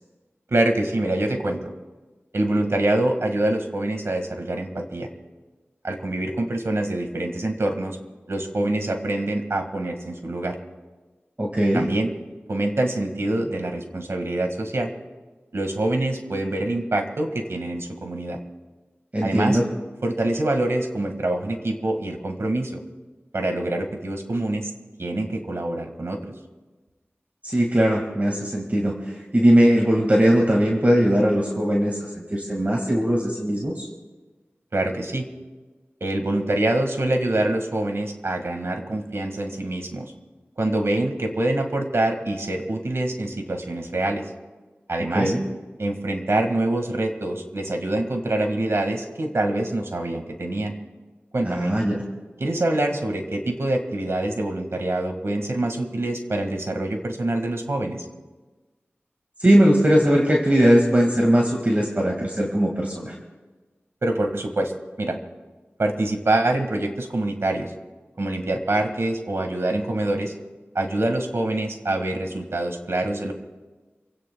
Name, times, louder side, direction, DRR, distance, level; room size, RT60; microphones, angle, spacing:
voice 1, 0.5-1.7 2.3-5.1 5.8-8.0 8.3-10.6 11.7-12.1 12.5-14.9 15.5-18.4 19.2-19.6 20.0-22.8 23.3-24.7 25.0-26.2 34.7-35.3 36.0-40.1 40.6-44.2 44.9-45.3 45.8-50.7 51.3-51.7 52.4-58.0 64.0-64.7 65.0-65.2 65.8-67.7 68.2-70.3 70.8-73.3, right 1 dB, 70° right, 5 dB, 1.9 m, -25 dB
voice 2, 11.4-11.8 19.1-19.6 27.4-33.9 45.1-45.4 51.4-52.0 59.4-63.1, equal, 35° right, -1 dB, 2.0 m, -20 dB
27.5 x 16.5 x 2.3 m, 1.3 s
wide cardioid pair, 55°, 5 cm